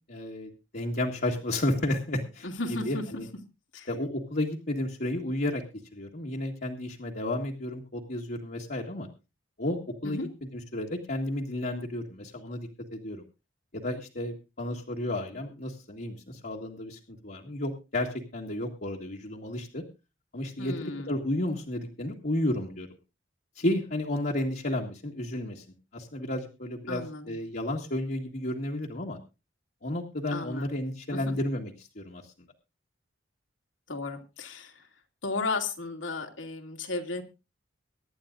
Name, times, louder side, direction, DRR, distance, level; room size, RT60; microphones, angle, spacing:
voice 1, 0.0-2.5 2.8-3.3 3.9-5.6 5.9-9.1 9.6-10.2 10.7-13.2 13.7-19.8 20.3-22.9 23.5-25.6 25.9-29.2 29.8-32.3, left 1 dB, 50° left, -2 dB, 1.7 m, -32 dB
voice 2, 2.4-3.0 3.7-3.9 10.0-10.3 20.6-21.1 26.9-27.3 30.3-30.8 31.1-31.2 33.9-34.9 35.2-37.2, left 3 dB, 80° left, 5 dB, 2.5 m, -34 dB
23.5 x 11.0 x 2.6 m, 0.28 s
head